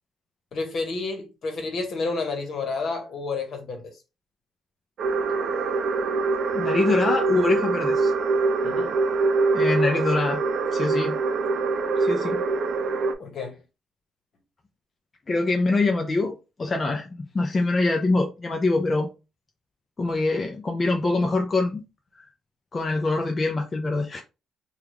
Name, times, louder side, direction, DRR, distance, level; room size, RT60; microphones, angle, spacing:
voice 1, 0.5-3.9 8.6-8.9 13.2-13.6, left 3 dB, 60° left, 1.2 m, -30 dB
sound 1, 5.0-13.1, right 3 dB, 65° right, 0.5 m, -24 dB
voice 2, 6.5-8.1 9.5-10.4 10.7-11.2 12.0-12.4 15.3-17.1 17.3-19.1 20.0-21.8 22.1-22.3 22.7-24.2, left 3 dB, 30° left, 0.5 m, -24 dB
3.4 x 2.4 x 3.0 m
cardioid pair, 90°, 0 cm